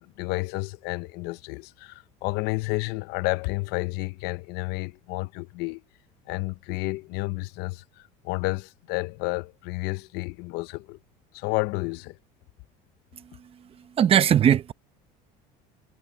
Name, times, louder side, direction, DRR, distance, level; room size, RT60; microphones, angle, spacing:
voice 1, 0.0-5.8 6.3-11.0 11.3-12.2, left 23 dB, 70° left, 0.8 m, -31 dB
voice 2, 13.1-14.7, right 9 dB, 35° right, 0.9 m, -22 dB
cardioid pair, 130°, 17 cm